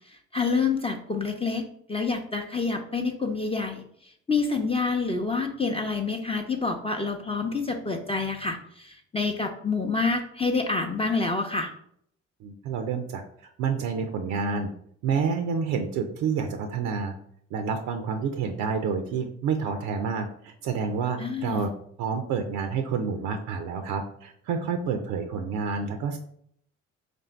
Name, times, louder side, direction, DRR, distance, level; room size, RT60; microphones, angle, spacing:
voice 1, 0.1-3.8 4.3-11.7 21.2-21.6, left 4 dB, 20° left, 3 dB, 0.5 m, -27 dB
voice 2, 12.4-13.2 13.6-14.7 15.0-17.1 17.5-21.7 22.0-26.2, right 5 dB, 80° right, 6 dB, 0.5 m, -29 dB
3.3 x 2.6 x 4.3 m, 0.67 s
supercardioid pair, 65°, 31 cm